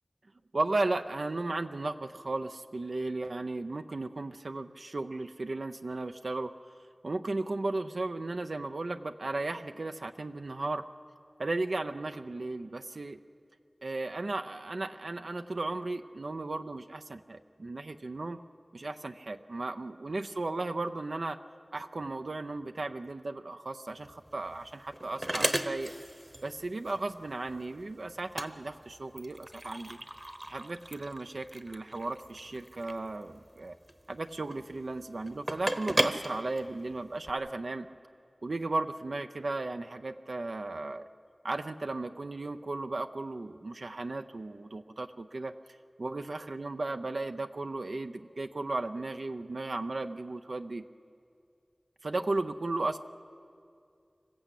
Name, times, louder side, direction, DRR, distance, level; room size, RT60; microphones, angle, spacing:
voice 1, 0.5-6.5 7.0-10.9 11.4-13.2 13.8-18.4 18.7-21.4 21.7-25.9 26.4-30.0 30.5-33.7 34.1-37.9 38.4-41.0 41.4-45.5 46.0-50.8 52.0-53.0, right 2 dB, 75° right, 8 dB, 0.6 m, -35 dB
sound 1, 24.0-37.3, right 1 dB, 25° right, 1.0 m, -36 dB
26.5 x 15.0 x 8.3 m, 2.4 s
wide cardioid pair, 65°, 0 cm